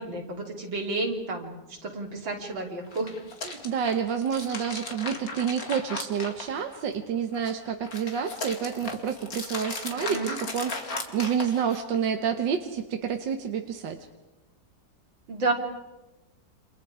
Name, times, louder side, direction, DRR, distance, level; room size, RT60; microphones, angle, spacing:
voice 1, 0.0-1.6 1.8-3.1 10.1-10.4 15.3-15.5, right 2 dB, 90° right, 1 dB, 4.2 m, -30 dB
sound 1, 2.8-7.0 7.3-12.0, left 3 dB, 50° left, 2.7 m, -37 dB
voice 2, 3.4-14.0, right 7 dB, 70° right, 5 dB, 1.8 m, -29 dB
29.0 x 27.5 x 5.0 m, 1.1 s
omnidirectional pair, 2.0 m